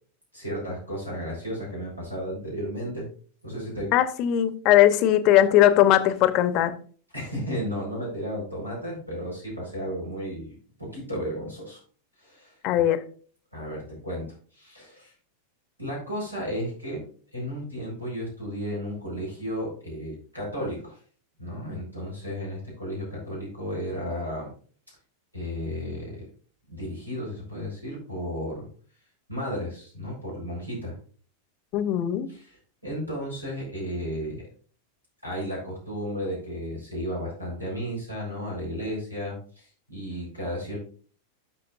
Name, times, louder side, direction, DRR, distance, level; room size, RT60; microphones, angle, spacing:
voice 1, 0.3-3.1 3.4-3.9 7.1-11.8 12.2-12.6 13.5-15.1 15.8-17.0 17.3-21.0 21.4-24.5 25.3-26.3 26.7-28.7 29.3-31.0 32.3-34.5 35.2-40.8, equal, 90° right, -4 dB, 4.8 m, -33 dB
voice 2, 3.9-6.7 12.6-13.0 31.7-32.3, left 12 dB, 40° left, 13 dB, 0.9 m, -19 dB
12.0 x 6.5 x 2.6 m, 0.42 s
figure-of-eight pair, 90°, 0 cm